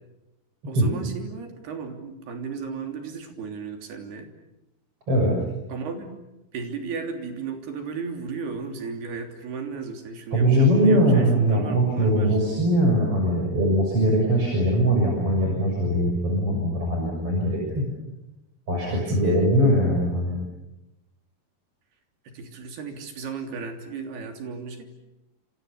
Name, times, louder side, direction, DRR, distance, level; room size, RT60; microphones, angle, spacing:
voice 1, 0.7-4.3 5.7-6.2 6.5-12.4 18.8-19.5 22.3-24.9, right 5 dB, 80° right, 4 dB, 5.2 m, -35 dB
voice 2, 10.3-17.9 18.7-20.4, equal, 35° right, -1 dB, 7.4 m, -21 dB
30.0 x 28.0 x 6.9 m, 0.93 s
omnidirectional pair, 4.5 m